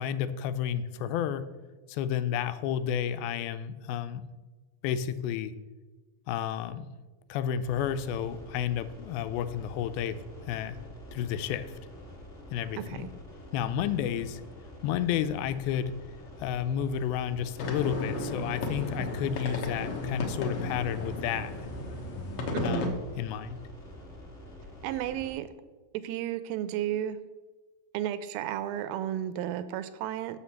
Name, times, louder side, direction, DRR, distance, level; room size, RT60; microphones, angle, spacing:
voice 1, 0.0-1.5 1.9-4.3 4.8-5.5 6.3-6.9 7.3-10.2 10.5-10.8 11.1-11.7 12.5-13.1 13.5-14.4 14.8-16.0 16.4-21.5 22.6-23.6, left 9 dB, 90° left, 12 dB, 2.4 m, -31 dB
sound 1, 7.6-25.3, left 1 dB, 25° left, 1.3 m, -47 dB
sound 2, 17.6-22.9, left 2 dB, 65° left, 1.6 m, -34 dB
voice 2, 22.5-23.0 24.8-25.5 26.0-27.2 27.9-30.4, right 11 dB, 85° right, 13 dB, 2.3 m, -33 dB
6.5 x 5.8 x 7.1 m, 1.3 s
omnidirectional pair, 4.2 m